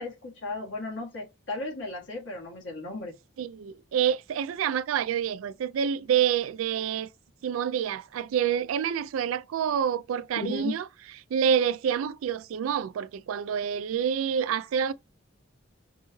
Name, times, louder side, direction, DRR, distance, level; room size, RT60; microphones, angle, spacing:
voice 1, 0.0-3.1 10.4-10.8, left 2 dB, 65° left, 1.5 m, -35 dB
voice 2, 3.4-7.1 7.4-10.8 11.3-14.9, right 8 dB, 90° right, 0.3 m, -27 dB
5.3 x 3.1 x 2.2 m
head